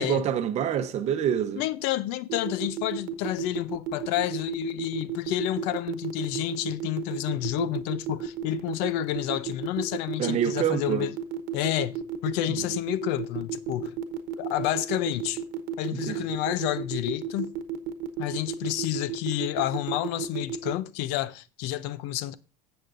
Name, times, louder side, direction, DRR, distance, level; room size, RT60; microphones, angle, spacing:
voice 1, 0.0-1.6 10.2-11.0 12.5-12.6 15.9-16.2, right 9 dB, 40° right, 0.9 m, -26 dB
voice 2, 1.6-11.1 11.5-14.0 14.4-15.4 15.8-17.5 18.2-22.4, left 14 dB, 70° left, 0.6 m, -30 dB
sound 1, 2.3-20.7, right 9 dB, 70° right, 1.1 m, -33 dB
13.5 x 8.0 x 2.5 m
cardioid pair, 155°, 18 cm